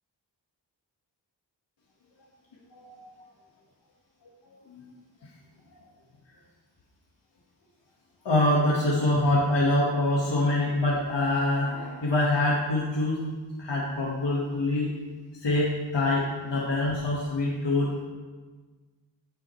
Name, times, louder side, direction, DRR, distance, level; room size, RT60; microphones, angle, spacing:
voice 1, 2.7-3.2 4.7-4.8 8.3-13.2 13.6-14.9 15.4-18.0, left 1 dB, 80° left, -5 dB, 1.7 m, -25 dB
14.0 x 7.6 x 3.2 m, 1.4 s
wide cardioid pair, 85°, 43 cm